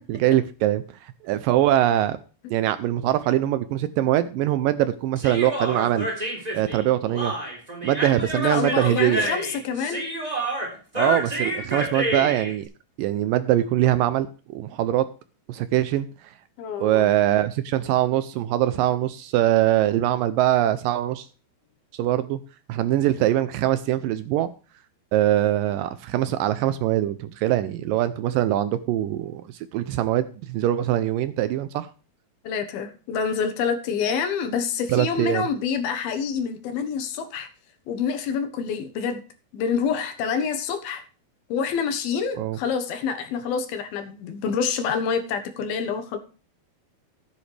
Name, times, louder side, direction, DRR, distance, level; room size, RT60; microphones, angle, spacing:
voice 1, 0.1-2.2 2.5-6.1 6.5-7.3 7.8-9.3 11.0-12.7 13.0-14.3 14.5-15.1 15.5-16.1 16.8-21.3 21.9-22.4 22.7-24.5 25.1-29.4 29.7-31.9 34.9-35.5 42.4-42.6, right 13 dB, 80° right, 13 dB, 2.1 m, -22 dB
Human voice, 5.2-12.5, right 1 dB, 10° right, 3.2 m, -29 dB
voice 2, 8.4-10.1 16.6-17.1 32.4-37.5 37.9-39.2 39.5-41.0 41.5-46.2, left 6 dB, 80° left, 7 dB, 3.1 m, -27 dB
14.0 x 10.0 x 3.3 m, 0.36 s
omnidirectional pair, 4.3 m